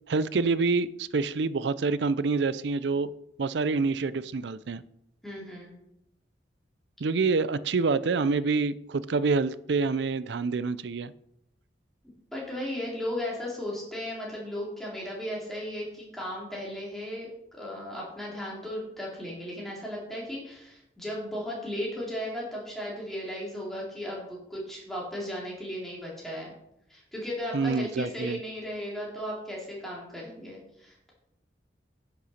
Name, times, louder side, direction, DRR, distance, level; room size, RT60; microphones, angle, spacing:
voice 1, 0.1-3.1 3.4-4.8 7.0-11.1 27.5-28.4, right 4 dB, 75° right, 16 dB, 0.5 m, -27 dB
voice 2, 5.2-5.8 12.3-26.5 26.9-31.1, equal, ahead, -5 dB, 3.4 m, -36 dB
10.0 x 6.8 x 5.7 m, 0.79 s
head